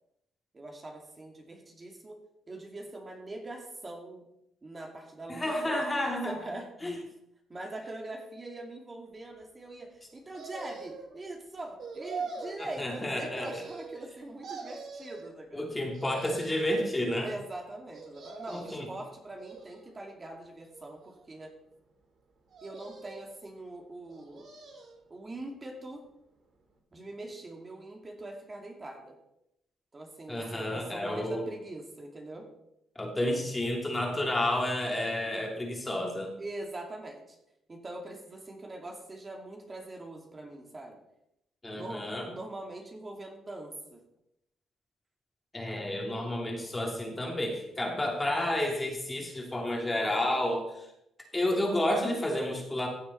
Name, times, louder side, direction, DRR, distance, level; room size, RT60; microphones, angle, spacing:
voice 1, 0.5-2.2 2.5-4.3 4.6-5.8 6.2-6.7 7.5-15.7 17.2-21.5 22.6-24.5 25.1-26.0 26.9-29.2 29.9-32.5 36.4-37.4 37.7-41.0 41.7-44.0, right 2 dB, 30° right, 1 dB, 2.4 m, -42 dB
voice 2, 5.3-6.4 6.8-7.0 12.6-13.5 15.5-17.3 18.5-18.9 30.3-31.4 33.0-36.3 41.6-42.3 45.5-50.9 51.3-52.9, left 1 dB, 15° left, 1 dB, 2.7 m, -30 dB
sound 1, 10.3-11.1 11.8-12.6 13.3-14.1 14.4-15.3 15.9-16.7 17.9-18.8 19.4-20.1 20.7-21.5 22.5-23.3 24.1-25.0 25.4-25.5, right 4 dB, 60° right, 3.1 m, -43 dB
15.5 x 7.1 x 4.2 m, 0.81 s
cardioid pair, 90°, 0 cm